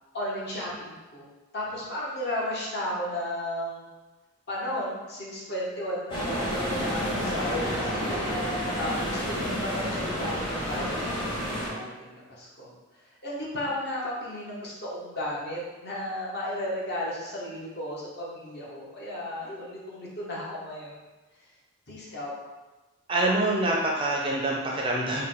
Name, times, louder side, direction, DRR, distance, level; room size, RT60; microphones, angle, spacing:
voice 1, 0.1-1.3 1.5-3.9 4.5-8.3 8.7-12.7 13.2-21.0 21.9-22.3, left 1 dB, 50° left, -5 dB, 0.9 m, -34 dB
sound 1, 6.1-11.7, equal, 20° left, 0.8 m, -30 dB
voice 2, 23.1-25.2, right 2 dB, 25° right, -2 dB, 0.4 m, -25 dB
4.3 x 2.2 x 3.7 m, 1.2 s
head